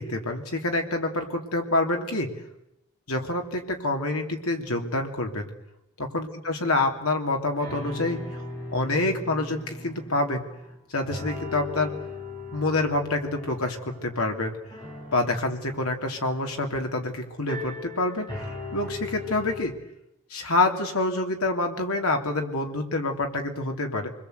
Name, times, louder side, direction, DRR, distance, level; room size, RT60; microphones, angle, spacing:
voice 1, 0.0-2.3 3.1-5.5 6.0-8.4 8.7-10.4 10.9-11.9 12.5-14.6 15.1-18.5 18.7-19.7 20.3-24.1, left 2 dB, 80° left, 3 dB, 3.1 m, -27 dB
sound 1, 7.6-10.8 11.0-19.6, left 2 dB, 20° left, 7.9 m, -39 dB
27.0 x 21.0 x 8.1 m, 0.87 s
head